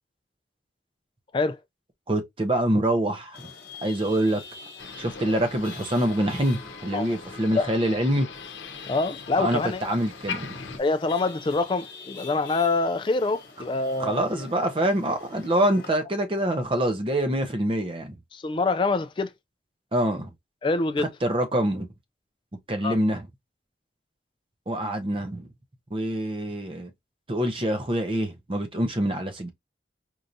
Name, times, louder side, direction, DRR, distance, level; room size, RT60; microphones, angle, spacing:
voice 1, 2.1-3.4 3.8-4.4 5.0-8.3 9.4-10.5 14.0-18.2 19.9-20.3 21.2-21.9 22.7-23.2 24.7-25.5 25.9-26.9 27.3-29.5, right 1 dB, 30° right, 0.6 m, -25 dB
Chatter / Vehicle horn car horn honking / Traffic noise roadway noise, 3.3-15.9, left 5 dB, 50° left, 1.2 m, -45 dB
Motor vehicle (road), 4.8-10.8, left 5 dB, 90° left, 0.7 m, -40 dB
voice 2, 8.9-9.9 10.8-14.4 18.3-19.3 20.6-21.1 22.8-23.0, left 3 dB, 25° left, 0.3 m, -25 dB
4.5 x 2.6 x 2.6 m
head